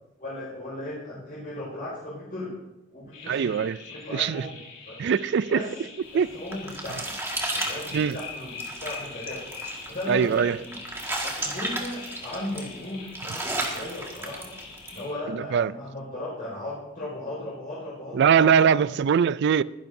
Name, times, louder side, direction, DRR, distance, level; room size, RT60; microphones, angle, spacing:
voice 1, 0.2-2.5 2.9-3.5 3.9-4.6 4.9-5.0 5.5-5.7 6.3-7.1 7.5-9.5 9.9-10.8 11.2-14.5 14.9-18.5 18.9-19.0, left 1 dB, 45° left, 5.3 m, -36 dB
sound 1, 3.1-15.2, left 5 dB, 70° left, 4.8 m, -43 dB
voice 2, 3.3-3.8 4.1-4.5 5.0-5.6 6.1-6.3 7.9-8.2 10.1-10.6 15.3-15.7 18.1-19.6, right 7 dB, 55° right, 0.3 m, -22 dB
sound 2, 6.1-15.0, right 1 dB, 10° right, 1.8 m, -34 dB
22.5 x 10.5 x 2.7 m
head